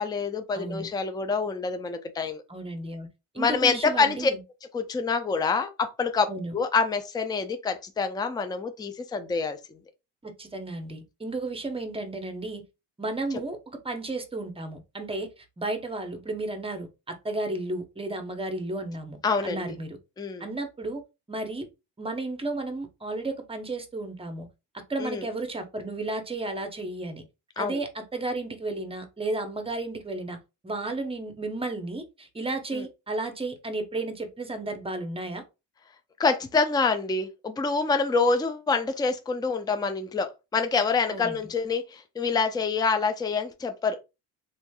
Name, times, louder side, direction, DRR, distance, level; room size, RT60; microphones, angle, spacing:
voice 1, 0.0-2.4 3.4-4.3 4.7-6.3 6.5-9.6 19.2-19.7 20.2-20.4 25.0-25.3 27.6-27.8 32.7-32.9 36.2-44.0, left 4 dB, 10° left, 0.4 m, -26 dB
voice 2, 0.5-0.9 2.5-3.1 3.3-4.4 6.3-6.5 10.2-12.6 13.0-19.2 19.4-20.0 20.4-21.0 21.3-21.7 22.0-24.5 24.9-27.2 27.6-30.4 30.6-35.4 41.1-41.5, right 2 dB, 15° right, 0.7 m, -33 dB
3.1 x 2.6 x 2.2 m
supercardioid pair, 80°, 39 cm